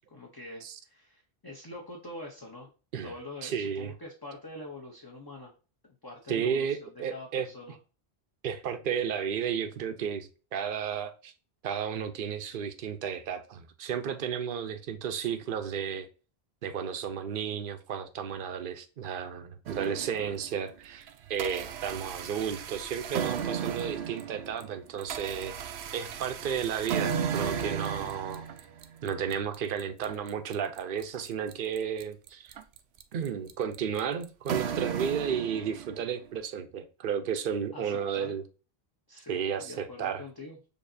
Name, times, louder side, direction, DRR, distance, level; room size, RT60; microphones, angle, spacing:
voice 1, 0.1-2.7 3.0-5.5 6.0-7.8 37.7-38.3 39.1-40.7, left 2 dB, 25° left, 0.8 m, -44 dB
voice 2, 3.4-3.9 6.3-7.5 8.4-11.3 11.6-16.1 16.6-25.5 25.9-28.4 29.0-32.6 33.1-38.4 39.3-40.2, right 7 dB, 60° right, 0.8 m, -33 dB
sound 1, 19.7-20.6 21.1-36.1, right 7 dB, 90° right, 0.8 m, -35 dB
6.7 x 2.8 x 2.6 m
omnidirectional pair, 1.1 m